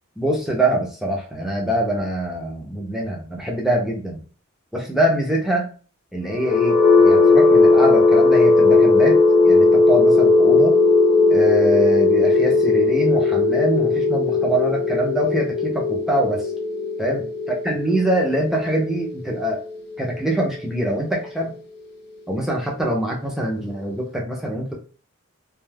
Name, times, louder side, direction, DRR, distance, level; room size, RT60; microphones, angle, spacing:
voice 1, 0.2-4.2 4.7-5.7 6.1-10.8 11.3-16.5 17.0-19.6 20.0-21.5 22.3-24.7, right 1 dB, ahead, -1 dB, 0.6 m, -24 dB
sound 1, 6.3-20.2, left 3 dB, 50° left, 0.5 m, -17 dB
2.4 x 2.3 x 3.3 m, 0.39 s
head